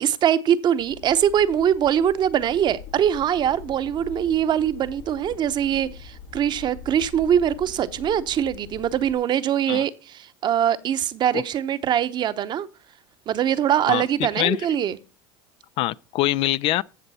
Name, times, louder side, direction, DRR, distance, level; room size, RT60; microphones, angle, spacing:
voice 1, 0.0-12.7 13.3-15.0, right 9 dB, 40° right, 0.9 m, -22 dB
sound 1, 0.8-9.1, left 6 dB, 80° left, 2.7 m, -43 dB
voice 2, 13.9-14.6 15.8-16.8, left 15 dB, 50° left, 0.4 m, -24 dB
14.5 x 6.7 x 4.2 m
supercardioid pair, 105°, 12 cm